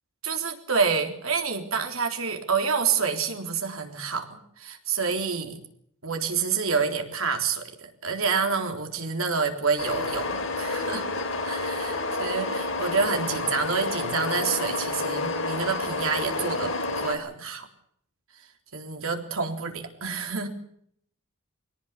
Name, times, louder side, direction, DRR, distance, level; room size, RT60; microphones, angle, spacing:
voice 1, 0.2-5.6 6.0-11.0 11.4-17.7 18.7-20.5, right 5 dB, 75° right, 4 dB, 3.7 m, -28 dB
sound 1, 9.8-17.2, left 3 dB, 70° left, 3.7 m, -29 dB
22.5 x 18.5 x 8.3 m, 0.67 s
head